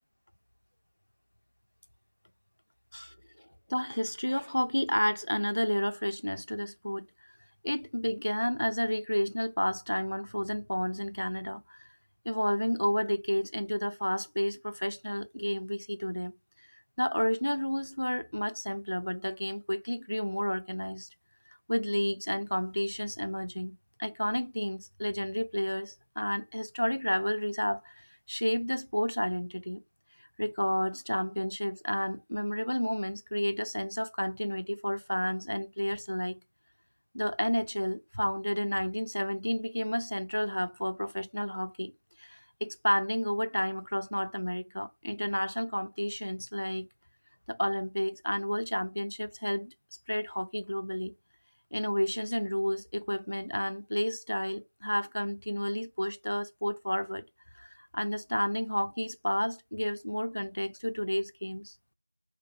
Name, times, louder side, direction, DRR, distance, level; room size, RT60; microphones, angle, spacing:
voice 1, 3.7-7.1 7.6-11.9 12.3-16.3 16.6-16.7 17.0-21.1 21.7-29.8 30.4-36.4 37.1-41.9 42.2-46.9 47.5-49.7 50.1-51.1 51.7-57.2 57.6-61.7, equal, 75° left, 0.4 m, -31 dB
2.3 x 2.2 x 3.5 m
figure-of-eight pair, 180°, 0 cm